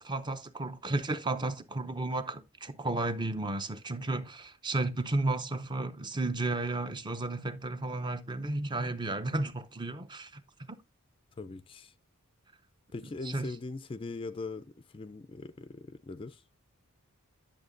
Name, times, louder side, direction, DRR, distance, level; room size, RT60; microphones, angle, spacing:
voice 1, 0.0-10.4 10.7-10.8 13.2-13.5, right 2 dB, 20° right, 0.6 m, -33 dB
voice 2, 11.4-11.9 12.9-16.4, left 3 dB, 25° left, 0.3 m, -41 dB
10.5 x 7.2 x 2.5 m
head